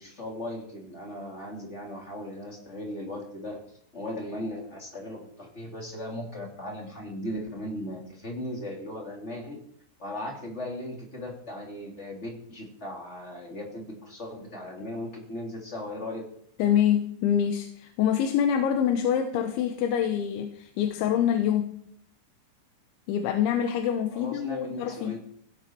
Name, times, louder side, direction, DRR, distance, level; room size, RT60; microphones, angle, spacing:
voice 1, 0.0-3.6 3.9-9.6 10.0-16.2 24.1-25.2, left 1 dB, 20° left, 0 dB, 2.1 m, -37 dB
voice 2, 16.6-21.8 23.1-25.2, left 9 dB, 75° left, 5 dB, 3.3 m, -25 dB
17.0 x 16.5 x 4.7 m, 0.67 s
omnidirectional pair, 5.9 m